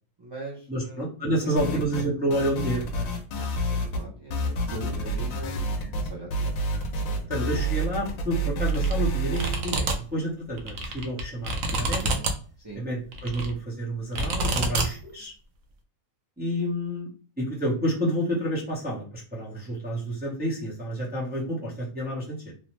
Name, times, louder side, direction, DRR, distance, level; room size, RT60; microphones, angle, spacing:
voice 1, 0.2-1.0 1.6-2.1 3.3-6.6 7.1-7.3 12.6-12.9, right 2 dB, 40° right, -3 dB, 0.3 m, -41 dB
voice 2, 0.7-3.1 4.9-5.1 6.7-6.8 7.1-12.1 12.8-15.3 16.4-17.1 17.4-22.5, equal, 10° right, -6 dB, 0.6 m, -29 dB
sound 1, 1.6-2.1 2.3-4.0 4.3-9.6, right 1 dB, 85° left, 1.0 m, -28 dB
sound 2, 8.7-8.9 9.3-10.0 10.5-12.3 13.1-13.6 14.2-14.9, right 2 dB, 75° right, 1.0 m, -27 dB
3.0 x 2.0 x 3.0 m, 0.41 s
omnidirectional pair, 1.4 m